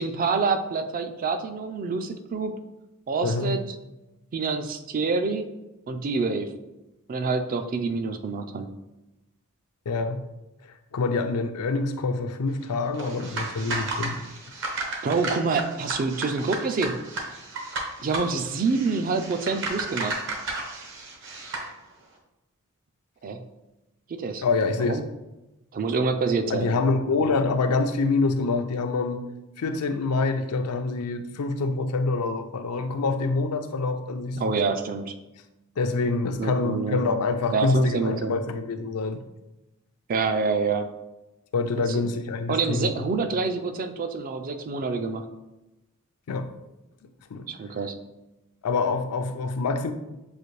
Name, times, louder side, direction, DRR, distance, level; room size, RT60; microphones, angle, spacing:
voice 1, 0.0-2.6 3.1-3.6 4.3-5.5 5.9-6.6 7.1-8.7 15.0-17.0 18.0-20.2 23.2-23.4 24.2-24.4 24.8-25.0 25.7-26.7 34.4-35.1 36.4-37.0 37.5-38.4 40.1-40.9 41.9-42.1 42.5-45.2 47.5-48.0, right 4 dB, 40° right, 8 dB, 0.4 m, -27 dB
voice 2, 3.2-3.6 9.9-10.2 10.6-14.2 24.4-25.0 26.5-29.3 29.6-34.6 35.8-39.2 41.5-43.1 46.3-46.5 47.3-47.5 48.6-49.9, left 3 dB, 90° left, 8 dB, 0.5 m, -26 dB
sound 1, 12.9-21.7, right 2 dB, 55° right, 0.8 m, -33 dB
6.5 x 2.5 x 3.1 m, 0.98 s
head